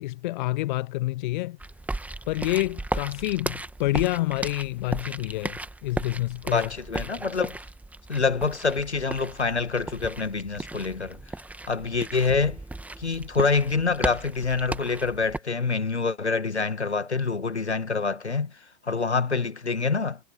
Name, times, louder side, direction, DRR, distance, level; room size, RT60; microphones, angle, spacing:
voice 1, 0.0-1.6 2.3-6.7, left 18 dB, 45° left, 0.9 m, -28 dB
sound 1, 1.6-15.4, right 2 dB, 5° right, 2.0 m, -36 dB
voice 2, 6.5-7.6 8.1-11.2 11.7-12.6 13.0-20.2, left 4 dB, 85° left, 1.9 m, -26 dB
figure-of-eight pair, 100°, 33 cm